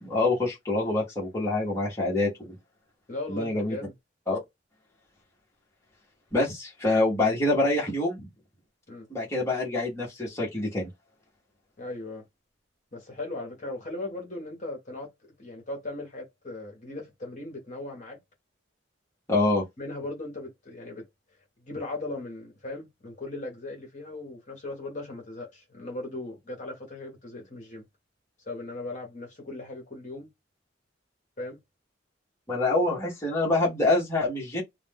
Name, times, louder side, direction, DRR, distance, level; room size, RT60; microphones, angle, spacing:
voice 1, 0.0-2.3 3.3-3.8 4.3-4.4 6.3-8.2 9.1-10.9 19.3-19.6 32.5-34.6, left 2 dB, 15° left, 0.9 m, -25 dB
voice 2, 3.1-3.9 8.9-9.1 11.8-12.2 12.9-15.1 15.4-18.2 19.8-21.0 21.6-27.8 28.4-30.3 31.4-31.6, left 2 dB, 40° left, 0.9 m, -38 dB
2.3 x 2.1 x 3.4 m
head